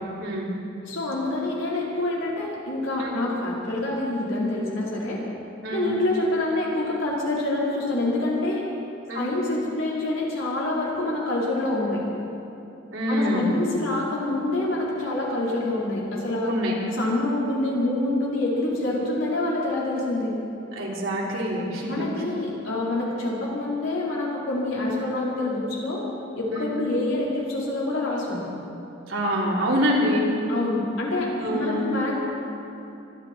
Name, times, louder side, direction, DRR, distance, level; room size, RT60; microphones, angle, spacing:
voice 1, 0.2-0.5 3.0-3.1 5.6-5.9 9.1-9.3 12.9-13.5 16.4-16.7 20.8-22.1 26.5-26.7 29.1-30.4 31.4-31.9, equal, 85° right, -4 dB, 3.7 m, -25 dB
voice 2, 0.9-5.2 5.7-8.6 9.1-12.0 13.1-16.5 16.9-20.3 21.9-26.0 26.4-28.5 30.5-32.2, left 2 dB, 85° left, -5 dB, 4.3 m, -26 dB
24.5 x 12.0 x 4.5 m, 2.9 s
head